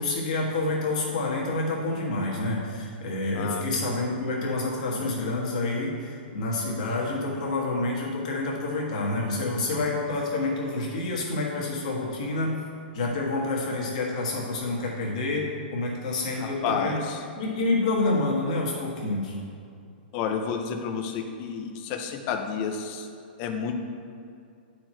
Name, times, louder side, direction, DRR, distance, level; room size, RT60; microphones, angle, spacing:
voice 1, 0.0-12.6 12.9-17.0 17.4-19.4, left 2 dB, 40° left, -3 dB, 1.5 m, -28 dB
voice 2, 16.4-17.2 20.1-23.1 23.4-23.7, left 6 dB, 25° left, 4 dB, 0.5 m, -30 dB
9.3 x 4.5 x 4.4 m, 2.4 s
hypercardioid pair, 180°, 6 cm